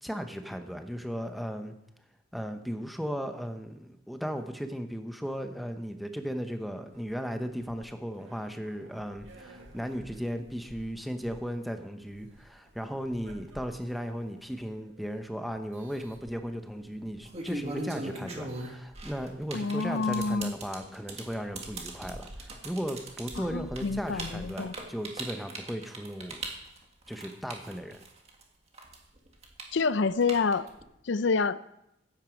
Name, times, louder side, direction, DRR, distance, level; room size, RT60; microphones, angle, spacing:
voice 1, 0.0-1.8 2.3-26.4 27.1-28.0, equal, ahead, 6 dB, 0.9 m, -36 dB
sound 1, 6.9-16.9 17.5-18.8 20.1-20.4 21.0-21.1 21.3-25.5, right 1 dB, 90° right, 2.0 m, -52 dB
sound 2, 16.0-16.3 17.1-28.4 28.7-30.8, right 2 dB, 35° right, 1.8 m, -39 dB
voice 2, 19.5-20.5 23.4-24.7 29.7-30.7 31.0-31.6, left 4 dB, 70° left, 15 dB, 0.5 m, -28 dB
14.0 x 9.2 x 5.2 m, 0.83 s
head